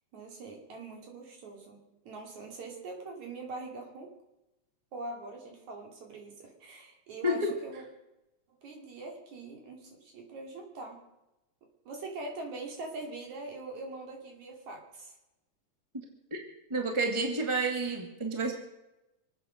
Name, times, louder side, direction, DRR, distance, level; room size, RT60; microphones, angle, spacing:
voice 1, 0.1-4.1 4.9-7.8 8.5-11.0 11.9-15.2, right 2 dB, 70° right, 2 dB, 4.1 m, -43 dB
voice 2, 16.3-18.5, right 1 dB, 10° right, 3 dB, 1.7 m, -30 dB
25.0 x 8.9 x 6.5 m, 0.95 s
omnidirectional pair, 3.5 m